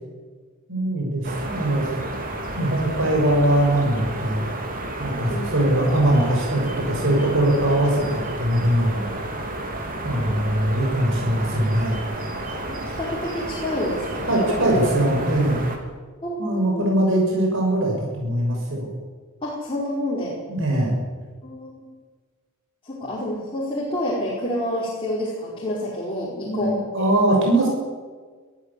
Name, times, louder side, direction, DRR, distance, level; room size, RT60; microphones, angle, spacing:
voice 1, 0.7-1.9 2.6-4.5 5.0-9.1 10.0-12.0 14.3-15.6 16.4-18.9 20.5-20.9 26.4-27.7, right 1 dB, 65° right, 0 dB, 6.5 m, -21 dB
sound 1, 1.2-15.8, right 1 dB, 40° right, 3.4 m, -31 dB
voice 2, 10.1-10.7 12.7-14.7 14.9-15.1 16.2-16.9 19.4-20.4 21.4-21.8 22.8-27.1 27.3-27.4, left 1 dB, 25° left, -6 dB, 5.0 m, -29 dB
23.0 x 14.5 x 8.6 m, 1.4 s
head